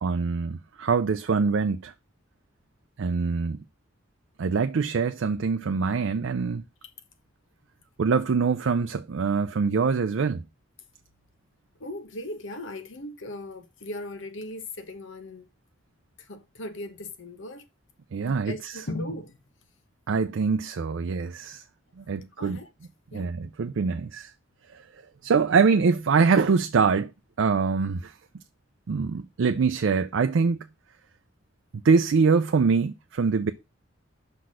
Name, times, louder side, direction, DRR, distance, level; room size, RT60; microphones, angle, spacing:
voice 1, 0.0-1.9 3.0-3.6 4.4-6.6 8.0-10.4 18.1-18.8 20.1-21.6 22.0-22.6 23.1-24.3 25.2-27.1 27.4-28.1 28.9-30.6 31.8-33.5, right 5 dB, 70° right, 0.4 m, -24 dB
voice 2, 11.8-15.5 16.3-17.7 18.2-19.4 22.4-22.7 23.1-23.3, left 1 dB, 70° left, 1.0 m, -38 dB
5.7 x 4.1 x 6.2 m
head